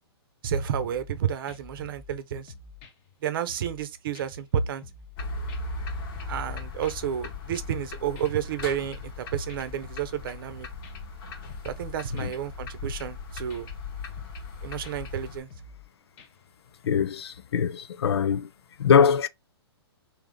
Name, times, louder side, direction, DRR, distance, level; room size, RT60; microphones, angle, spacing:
voice 1, 0.4-2.5 3.2-4.8 6.2-10.7 11.6-13.7 14.6-15.5, right 9 dB, 55° right, 0.7 m, -31 dB
sound 1, 0.8-1.2 1.5-2.2 2.5-3.8 4.1-4.3 4.6-5.2 5.5-6.5 6.8-6.9 7.3-7.9 8.2-9.2 9.5-11.2 11.5-11.9 12.2-12.3 12.6-13.2 13.5-13.8 14.1-14.5 14.8-14.9 15.3-15.9 16.2-16.5 16.8-17.0, left 4 dB, 35° left, 0.9 m, -49 dB
sound 2, 5.2-15.4, left 3 dB, 55° left, 1.2 m, -38 dB
voice 2, 16.9-18.5 18.8-19.3, left 7 dB, 70° left, 0.5 m, -22 dB
3.7 x 2.7 x 3.6 m
hypercardioid pair, 125°, 14 cm